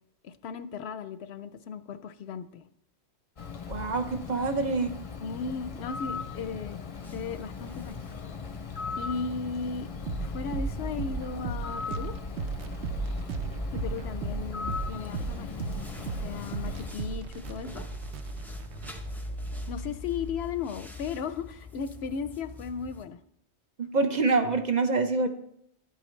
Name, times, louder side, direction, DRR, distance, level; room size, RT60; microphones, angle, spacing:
voice 1, 0.2-2.6 5.2-6.8 7.1-8.0 9.0-9.9 10.2-12.1 13.7-15.7 16.0-17.8 19.7-23.2, left 5 dB, 75° left, 12 dB, 0.8 m, -36 dB
Bird, 3.4-16.9, left 5 dB, 40° left, 0.6 m, -39 dB
voice 2, 3.7-4.9 23.8-25.3, right 3 dB, 45° right, 6 dB, 0.7 m, -26 dB
sound 1, 7.0-23.1, left 1 dB, ahead, 0.6 m, -41 dB
sound 2, 10.1-19.7, right 5 dB, 80° right, 1.0 m, -37 dB
11.5 x 8.5 x 3.2 m, 0.73 s
omnidirectional pair, 1.1 m